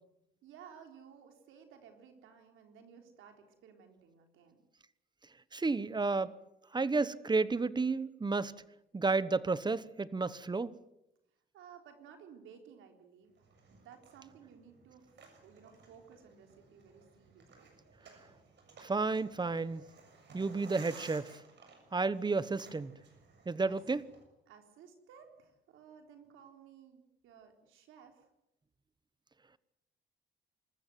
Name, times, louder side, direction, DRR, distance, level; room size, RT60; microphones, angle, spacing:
voice 1, 0.4-4.6 11.5-17.7 23.7-23.8 24.5-28.2, right 7 dB, 90° right, 4.1 m, -57 dB
voice 2, 5.5-6.3 6.7-8.5 8.9-10.7 18.8-19.8 20.3-21.4 21.9-22.9 23.5-24.0, right 3 dB, 20° right, 1.2 m, -31 dB
sound 1, 13.4-24.2, right 4 dB, 60° right, 7.3 m, -57 dB
26.5 x 14.5 x 9.3 m
cardioid pair, 90°, 20 cm